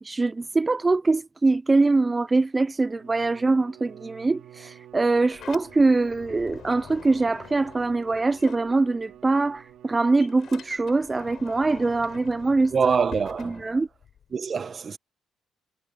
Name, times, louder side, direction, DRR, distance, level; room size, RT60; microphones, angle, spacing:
voice 1, 0.0-12.7 13.4-13.9, right 3 dB, 25° right, 0.5 m, -23 dB
Bowed string instrument, 2.8-11.1, right 11 dB, 80° right, 2.8 m, -50 dB
Sliding door, 4.9-9.3 9.6-14.3, left 9 dB, 65° left, 6.4 m, -46 dB
voice 2, 12.7-13.7 14.3-15.0, right 6 dB, 45° right, 1.2 m, -25 dB
cardioid pair, 90°, 0 cm